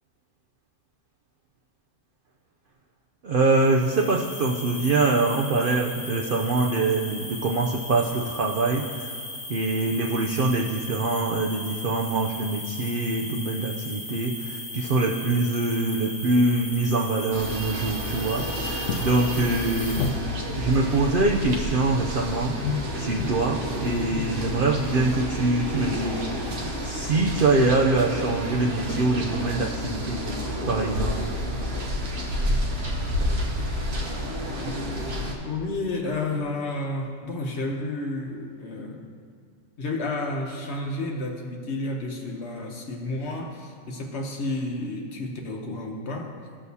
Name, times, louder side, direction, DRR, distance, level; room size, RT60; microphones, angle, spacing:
voice 1, 3.2-9.2 9.5-20.1 20.6-22.6 23.0-30.2 30.7-31.2, right 3 dB, 65° right, 0 dB, 0.5 m, -24 dB
sound 1, 3.5-20.1, left 2 dB, 35° left, 1.2 m, -37 dB
sound 2, 17.3-35.3, equal, 50° right, 1.1 m, -30 dB
sound 3, 18.9-27.9, left 4 dB, 70° left, 0.9 m, -35 dB
voice 2, 35.4-39.1 39.8-46.3, left 2 dB, 55° left, 1 dB, 1.0 m, -31 dB
14.0 x 6.4 x 2.7 m, 2.1 s
omnidirectional pair, 1.5 m